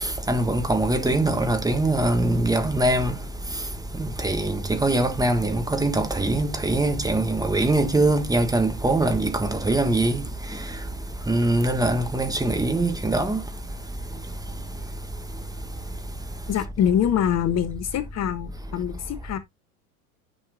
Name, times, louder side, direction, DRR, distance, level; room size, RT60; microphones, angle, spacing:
voice 1, 0.3-3.1 4.2-10.2 11.3-13.4, right 2 dB, 10° right, 1.4 m, -22 dB
voice 2, 16.5-19.4, left 9 dB, 35° left, 1.1 m, -24 dB
9.9 x 5.7 x 2.6 m
hypercardioid pair, 85°, 45 cm